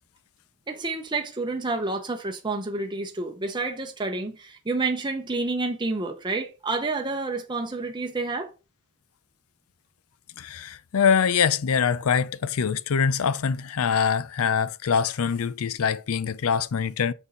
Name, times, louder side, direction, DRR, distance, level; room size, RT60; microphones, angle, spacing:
voice 1, 0.7-8.5, right 3 dB, 20° right, 0.8 m, -29 dB
voice 2, 10.4-17.1, left 6 dB, 65° left, 0.5 m, -24 dB
6.7 x 5.4 x 3.8 m
head